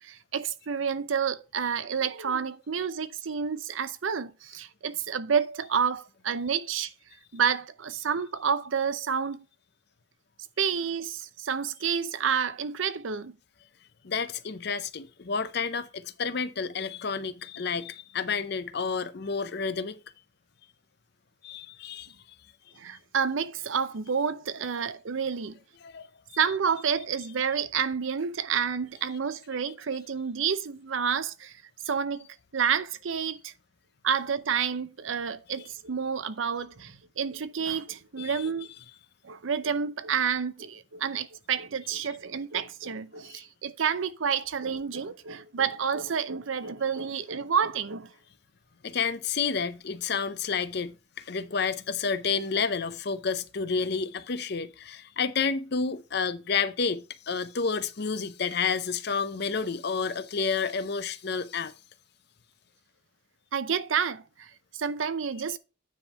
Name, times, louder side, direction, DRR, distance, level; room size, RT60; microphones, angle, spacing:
voice 1, 0.0-6.9 7.3-9.5 10.6-13.4 22.8-25.6 26.4-31.6 31.9-32.3 32.5-33.5 34.0-38.7 39.2-48.1 63.5-65.6, right 7 dB, 80° right, 0.6 m, -29 dB
voice 2, 14.0-20.0 21.4-22.1 25.8-26.1 38.2-38.4 43.3-43.4 48.8-61.7, left 5 dB, 55° left, 0.6 m, -30 dB
9.5 x 3.6 x 5.5 m
head